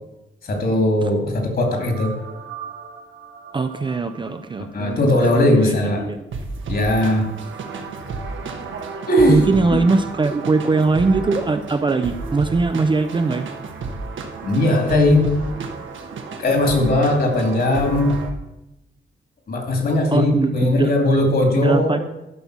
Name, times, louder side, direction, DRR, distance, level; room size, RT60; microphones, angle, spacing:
voice 1, 0.4-2.1 4.7-6.0 6.7-7.3 9.1-9.4 9.7-9.8 14.4-15.3 16.4-18.2 19.5-22.0, left 1 dB, 50° left, 3 dB, 2.4 m, -18 dB
sound 1, 1.8-4.4 4.8-4.9 6.3-18.3, right 4 dB, 80° right, 1.3 m, -32 dB
voice 2, 3.5-6.2 9.3-13.5 20.1-20.9 21.6-22.0, right 3 dB, 25° right, 8 dB, 0.5 m, -21 dB
12.5 x 5.7 x 6.0 m, 0.94 s
wide cardioid pair, 160°, 20 cm